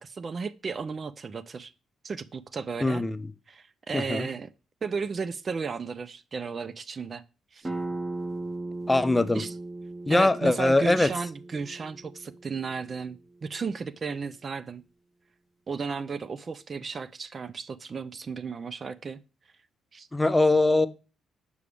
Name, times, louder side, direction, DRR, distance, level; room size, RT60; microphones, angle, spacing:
voice 1, 0.0-1.7 2.0-3.0 3.5-4.5 4.8-7.2 7.5-7.7 9.3-9.5 10.1-14.8 15.7-19.2 19.9-20.1, right 5 dB, 40° right, 0.3 m, -34 dB
voice 2, 2.8-3.2 3.9-4.3 8.9-9.4 10.1-11.1 20.1-20.9, left 2 dB, 15° left, 0.5 m, -22 dB
sound 1, 7.6-13.0, right 2 dB, 25° right, 0.9 m, -37 dB
6.7 x 4.8 x 3.3 m
cardioid pair, 90°, 0 cm